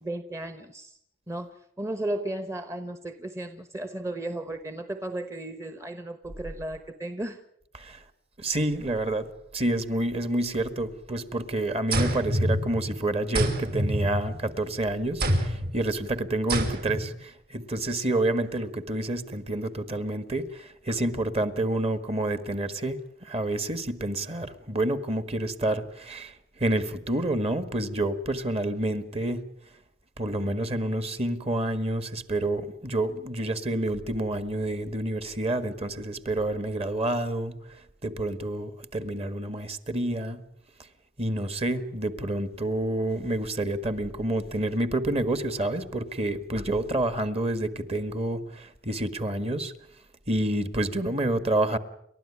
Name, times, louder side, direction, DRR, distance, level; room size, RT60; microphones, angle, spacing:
voice 1, 0.0-1.0 1.3-7.4 51.2-51.4, right 1 dB, 15° right, 9 dB, 1.1 m, -35 dB
voice 2, 8.4-9.3 9.5-29.4 30.2-37.5 38.0-40.4 41.2-49.7 50.3-51.8, right 1 dB, 30° right, 11 dB, 1.7 m, -28 dB
sound 1, 11.9-13.0 13.3-14.6 15.2-15.7 16.5-17.1, right 1 dB, 55° right, 5.3 m, -27 dB
30.0 x 13.0 x 9.8 m, 0.74 s
head